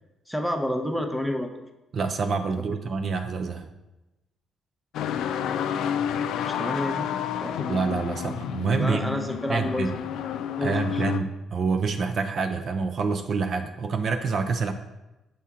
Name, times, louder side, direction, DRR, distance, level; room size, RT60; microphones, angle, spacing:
voice 1, 0.3-1.5 6.4-7.1 7.4-7.7 8.8-9.9 10.6-11.0, left 1 dB, ahead, 4 dB, 0.7 m, -29 dB
voice 2, 1.9-3.7 7.7-9.2 9.5-9.9 10.6-14.7, right 4 dB, 50° right, 7 dB, 0.4 m, -27 dB
sound 1, 4.9-11.2, left 8 dB, 80° left, 0.3 m, -30 dB
7.0 x 4.2 x 3.6 m, 0.99 s
cardioid pair, 110°, 0 cm